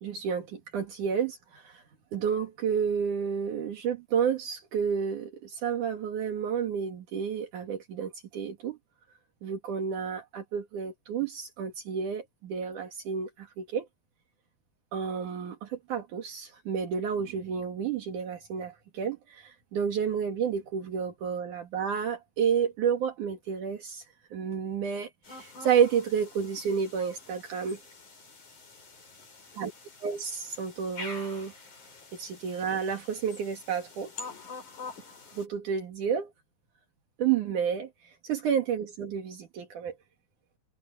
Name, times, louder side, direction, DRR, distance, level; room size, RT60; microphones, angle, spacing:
voice 1, 0.0-1.8 2.1-8.8 9.4-13.9 14.9-24.1 24.3-27.8 29.6-29.7 30.0-31.5 32.1-34.1 35.3-36.3 37.2-39.9, right 7 dB, 70° right, 3.5 m, -30 dB
sound 1, 25.2-35.5, left 4 dB, 65° left, 7.8 m, -46 dB
omnidirectional pair, 3.7 m